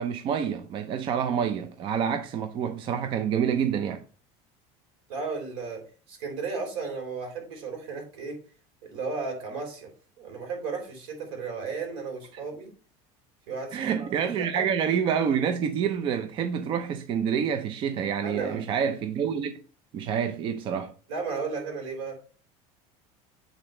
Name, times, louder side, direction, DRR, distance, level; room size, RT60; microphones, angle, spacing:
voice 1, 0.0-4.0 13.7-19.6 19.9-20.9, right 7 dB, 35° right, 0.5 m, -27 dB
voice 2, 5.1-8.4 8.8-9.9 10.2-12.7 13.5-14.7 18.2-18.7 21.1-22.2, right 4 dB, 75° right, 3.5 m, -34 dB
8.1 x 3.8 x 4.3 m
cardioid pair, 160°, 14 cm